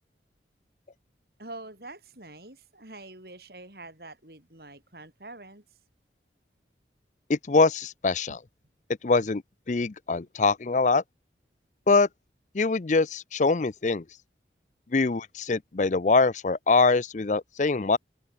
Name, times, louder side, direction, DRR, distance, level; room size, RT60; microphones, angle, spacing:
voice 1, 1.4-5.8 8.3-8.4, right 2 dB, 55° right, 6.3 m, -45 dB
voice 2, 7.3-8.4 9.0-9.4 9.7-11.0 11.9-12.1 12.5-14.0 14.9-18.0, left 3 dB, 40° left, 0.5 m, -23 dB
head